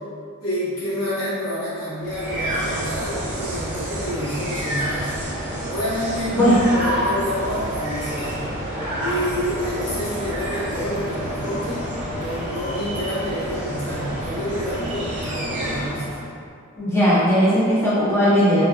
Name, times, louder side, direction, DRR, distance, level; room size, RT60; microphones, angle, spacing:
voice 1, 0.4-5.1 5.7-8.4 9.0-16.0, equal, 85° left, -10 dB, 1.1 m, -28 dB
sound 1, 2.0-16.3, equal, 35° right, 0.8 m, -28 dB
voice 2, 16.8-18.6, equal, 10° left, -11 dB, 0.7 m, -17 dB
3.5 x 2.2 x 2.3 m, 2.3 s
head